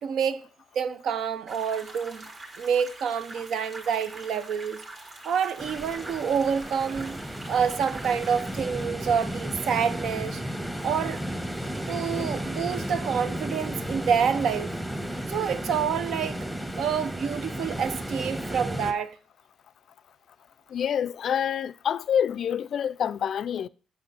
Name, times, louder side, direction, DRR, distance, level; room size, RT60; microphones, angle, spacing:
voice 1, 0.0-0.4 0.7-2.3 2.6-4.8 5.2-7.2 7.5-10.4 10.8-11.2 11.9-14.7 15.3-16.4 16.8-19.2, right 7 dB, 75° right, 0.6 m, -27 dB
sound 1, 1.5-8.6, right 2 dB, 40° right, 1.8 m, -44 dB
sound 2, 5.6-18.9, equal, 10° right, 1.1 m, -33 dB
voice 2, 20.7-23.7, left 8 dB, 60° left, 0.3 m, -27 dB
8.5 x 6.2 x 4.0 m
cardioid pair, 90°, 0 cm